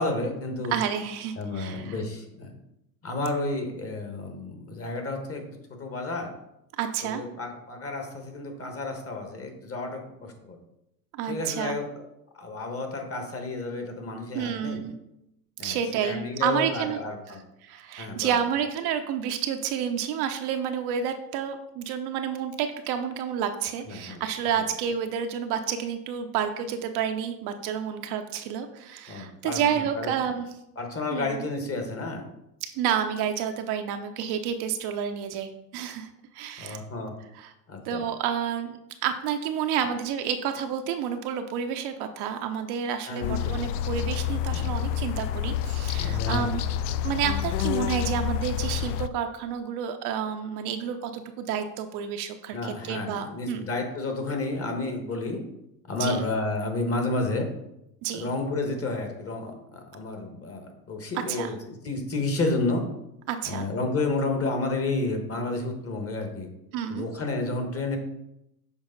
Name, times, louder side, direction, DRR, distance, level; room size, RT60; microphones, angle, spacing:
voice 1, 0.0-0.8 1.4-2.5 3.0-5.4 5.7-6.3 7.0-10.6 11.3-12.0 12.3-14.8 15.6-17.4 18.0-18.4 23.9-24.2 29.1-30.1 30.8-32.2 36.6-37.1 37.7-38.0 43.1-43.6 44.5-44.7 46.0-46.5 52.5-55.4 55.9-57.5 58.1-62.8 63.4-66.5 66.9-68.0, left 2 dB, 30° left, 4 dB, 1.5 m, -31 dB
voice 2, 0.7-2.0 6.8-7.2 11.1-11.8 14.3-14.9 15.6-17.0 17.3-30.5 31.1-31.4 32.8-36.1 36.3-36.8 37.3-37.5 37.8-46.6 47.0-53.6 56.0-56.3 58.0-58.3 61.3-61.5 63.3-63.6 66.7-67.0, right 8 dB, 50° right, 6 dB, 0.7 m, -30 dB
sound 1, 43.2-49.1, left 10 dB, 70° left, 0.5 m, -28 dB
7.1 x 4.7 x 3.9 m, 0.85 s
hypercardioid pair, 100°, 49 cm